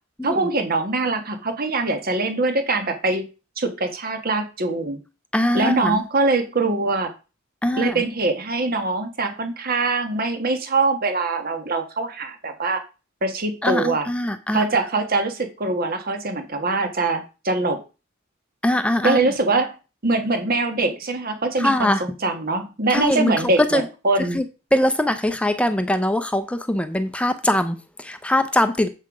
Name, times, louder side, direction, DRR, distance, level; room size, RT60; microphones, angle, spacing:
voice 1, 0.2-3.2 3.6-5.0 5.5-7.1 7.8-12.8 13.2-14.1 14.5-17.8 19.0-19.8 20.0-24.4, right 3 dB, 45° right, 1.4 m, -23 dB
voice 2, 5.3-6.0 7.6-8.0 13.6-14.6 18.6-19.2 21.6-22.0 22.9-23.3 23.7-23.8 24.3-24.4 24.7-28.9, left 1 dB, 5° left, 0.6 m, -22 dB
7.6 x 5.8 x 4.8 m
head